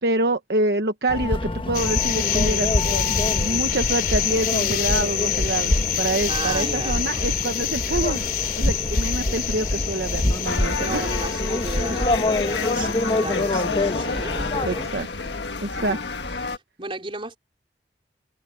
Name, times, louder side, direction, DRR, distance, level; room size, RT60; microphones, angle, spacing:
voice 1, 0.0-11.0 14.6-15.3 15.6-16.0, right 2 dB, 65° right, 1.1 m, -26 dB
sound 1, 1.1-14.8, left 1 dB, 30° left, 1.0 m, -26 dB
sound 2, 1.7-14.1, left 10 dB, 55° left, 3.7 m, -27 dB
voice 2, 6.3-7.2 10.7-14.9 15.2-15.4 15.7-16.0 16.4-17.4, right 2 dB, 30° right, 4.3 m, -34 dB
sound 3, 10.5-16.6, left 4 dB, 80° left, 1.5 m, -30 dB
head